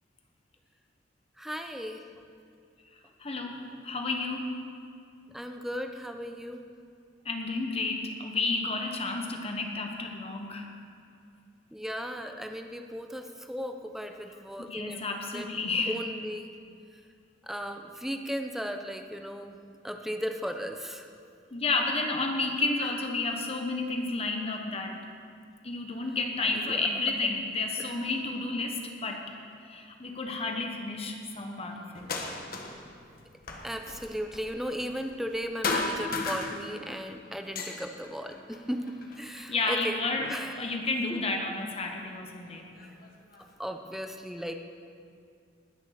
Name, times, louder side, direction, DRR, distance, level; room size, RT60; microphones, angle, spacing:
voice 1, 1.4-2.0 5.3-6.7 11.7-15.0 15.3-15.5 15.9-16.5 17.4-21.1 26.5-26.9 27.8-27.9 33.6-40.6 41.1-41.2 42.8-42.9 43.6-44.5, equal, ahead, 5 dB, 0.8 m, -36 dB
voice 2, 3.2-4.6 7.2-10.7 14.7-16.0 21.5-25.0 25.6-29.2 29.6-32.1 39.3-42.7, left 3 dB, 30° left, 3 dB, 1.3 m, -31 dB
sound 1, 31.9-32.9 33.2-35.4 35.6-37.0 37.4-39.3 39.9-40.8 41.8-41.9 42.5-43.5, left 3 dB, 50° left, 1.4 m, -36 dB
19.5 x 7.2 x 6.6 m, 2.3 s
head